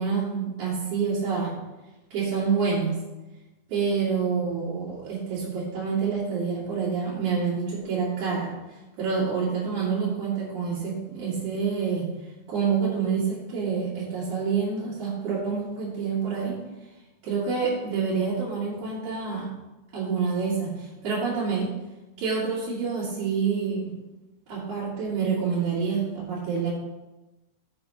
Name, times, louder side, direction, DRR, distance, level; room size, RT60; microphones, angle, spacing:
voice 1, 0.0-1.6 2.1-3.0 3.7-8.5 9.0-12.1 12.5-16.6 17.2-19.5 19.9-21.7 22.2-23.9 24.5-26.7, right 5 dB, 70° right, -9 dB, 3.6 m, -27 dB
14.0 x 7.3 x 2.9 m, 1.1 s
omnidirectional pair, 3.5 m